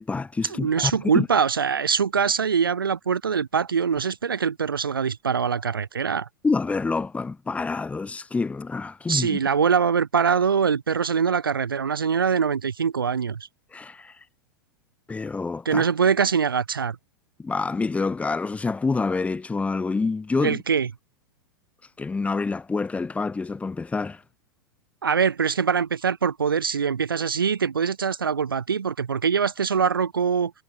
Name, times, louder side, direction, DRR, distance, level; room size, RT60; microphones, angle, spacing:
voice 1, 0.0-1.3 6.4-9.4 13.7-14.1 15.1-15.9 17.4-20.6 22.0-24.2, left 4 dB, 10° left, 2.3 m, -27 dB
voice 2, 0.5-6.3 9.1-13.5 15.7-17.0 20.4-20.9 25.0-30.5, right 6 dB, 85° right, 0.5 m, -23 dB
figure-of-eight pair, 95°, 11 cm